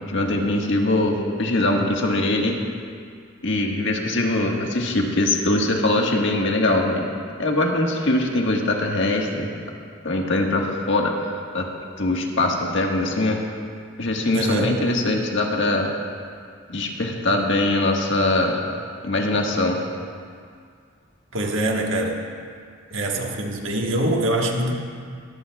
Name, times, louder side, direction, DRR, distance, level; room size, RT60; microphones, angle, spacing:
voice 1, 0.0-2.6 3.4-7.1 7.4-9.5 10.0-11.1 11.5-11.6 12.0-13.4 14.0-15.9 16.7-18.6 19.0-19.8, left 2 dB, 65° left, 0 dB, 1.5 m, -22 dB
voice 2, 14.3-14.8 21.3-22.2 22.9-24.7, right 1 dB, 70° right, 1 dB, 1.4 m, -24 dB
22.5 x 14.0 x 2.3 m, 2.2 s
head